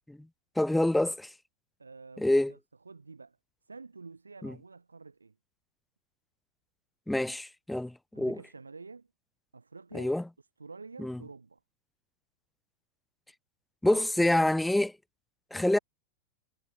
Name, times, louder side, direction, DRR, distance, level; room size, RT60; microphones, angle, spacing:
voice 1, 0.6-1.3 2.2-2.5 4.4-4.5 7.1-8.4 9.9-10.2 11.0-11.2 13.8-14.9 15.5-15.8, left 1 dB, 5° left, 0.4 m, -26 dB
voice 2, 1.8-2.6 2.8-3.4 3.7-5.3 8.1-9.1 9.5-10.1 10.6-11.6 13.9-14.3 15.7-15.8, right 4 dB, 80° right, 2.9 m, -48 dB
figure-of-eight pair, 90°, 0 cm